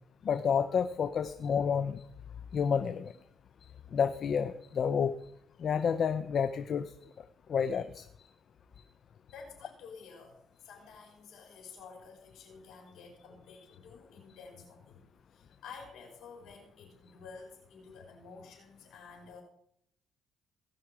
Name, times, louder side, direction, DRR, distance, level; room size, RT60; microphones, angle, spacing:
voice 1, 0.2-2.0 2.5-3.1 3.9-5.1 5.6-6.9 7.5-8.1, left 7 dB, 55° left, 11 dB, 0.5 m, -29 dB
voice 2, 9.3-19.4, left 5 dB, 80° left, 1 dB, 3.9 m, -51 dB
17.0 x 5.8 x 4.9 m, 0.71 s
cardioid pair, 90°, 0 cm